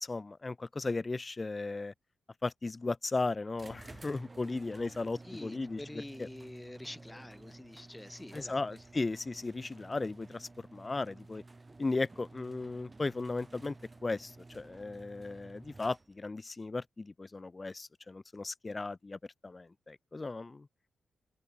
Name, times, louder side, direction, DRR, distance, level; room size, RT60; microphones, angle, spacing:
voice 1, 0.0-1.9 2.4-5.8 6.2-6.3 8.3-11.4 11.8-13.7 14.0-20.7, left 3 dB, 30° left, 1.0 m, -36 dB
sound 1, 3.5-16.3, right 3 dB, 25° right, 3.9 m, -53 dB
voice 2, 5.2-8.8, left 1 dB, 15° left, 4.5 m, -47 dB
open air
cardioid pair, 65°, 0 cm